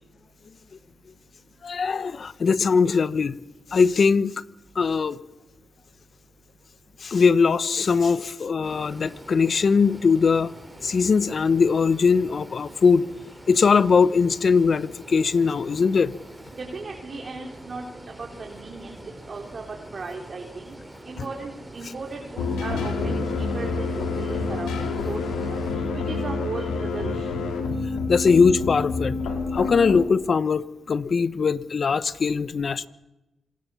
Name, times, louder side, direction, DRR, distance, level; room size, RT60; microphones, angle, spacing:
voice 1, 1.6-3.3 3.7-4.3 4.7-5.2 7.0-10.5 10.8-13.1 13.5-16.1 28.1-29.2 29.5-32.9, left 5 dB, 55° left, 16 dB, 1.1 m, -21 dB
sound 1, 8.6-25.8, right 1 dB, 15° right, 6.6 m, -44 dB
voice 2, 16.6-17.9 18.2-19.0 19.3-20.7 21.0-24.8 25.1-27.3, right 3 dB, 50° right, 1 dB, 3.8 m, -36 dB
sound 2, 22.4-30.1, left 3 dB, 90° left, 4.0 m, -28 dB
26.5 x 20.5 x 7.1 m, 0.98 s
supercardioid pair, 55°, 0 cm